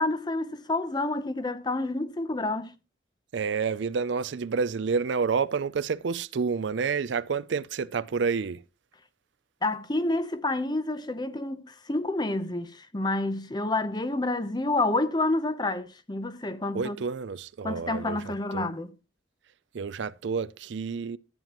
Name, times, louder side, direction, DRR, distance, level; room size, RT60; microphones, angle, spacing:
voice 1, 0.0-2.7 9.6-17.0 17.6-18.9, left 2 dB, 20° left, 0.7 m, -29 dB
voice 2, 3.3-8.6 16.7-18.7 19.7-21.2, right 5 dB, 70° right, 0.4 m, -29 dB
13.0 x 9.1 x 3.0 m
head